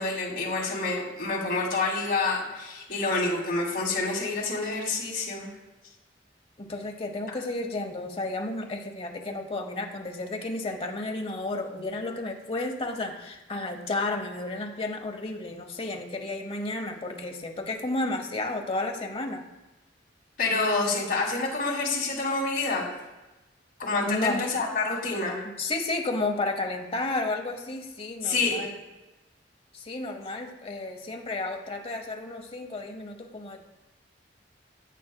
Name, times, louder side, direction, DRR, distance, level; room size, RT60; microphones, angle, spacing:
voice 1, 0.0-5.5 20.4-22.9 23.8-25.4 28.2-28.6, left 3 dB, 60° left, -3 dB, 2.2 m, -28 dB
voice 2, 6.6-19.4 24.1-24.5 25.6-28.8 29.7-33.6, left 2 dB, 35° left, 4 dB, 0.9 m, -32 dB
9.1 x 8.5 x 2.2 m, 1.1 s
head